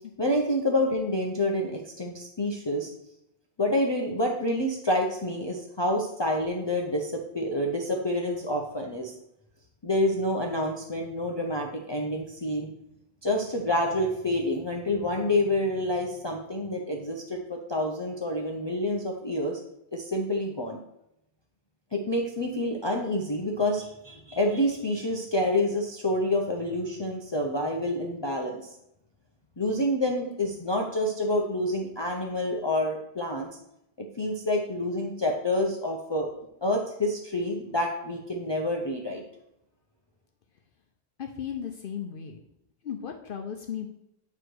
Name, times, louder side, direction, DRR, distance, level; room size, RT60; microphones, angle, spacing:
voice 1, 0.2-2.9 3.6-9.1 9.8-12.7 13.2-19.6 19.9-20.8 21.9-28.6 29.6-33.5 34.0-36.3 36.6-39.2, left 1 dB, 30° left, 0 dB, 0.6 m, -28 dB
voice 2, 41.2-42.4 42.8-43.9, left 8 dB, 60° left, 3 dB, 0.8 m, -35 dB
8.9 x 3.1 x 4.6 m, 0.80 s
omnidirectional pair, 1.1 m